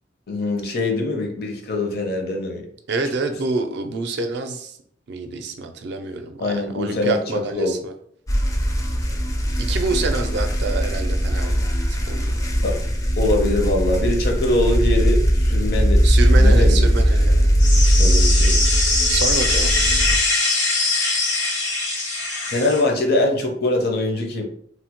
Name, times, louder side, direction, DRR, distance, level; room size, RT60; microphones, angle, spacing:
voice 1, 0.3-2.7 6.4-7.7 12.6-12.8 13.2-16.0 16.3-16.8 18.0-18.6 22.5-24.4, left 2 dB, 60° left, 2 dB, 0.6 m, -23 dB
voice 2, 2.9-4.7 5.1-7.9 9.6-11.7 12.1-12.3 16.0-17.5 19.1-19.7, right 3 dB, 65° right, 6 dB, 0.4 m, -27 dB
sound 1, 8.3-20.2, equal, 20° left, 0.4 m, -19 dB
sound 2, 17.6-22.8, left 2 dB, 80° left, 0.9 m, -22 dB
3.0 x 2.0 x 2.9 m, 0.64 s
head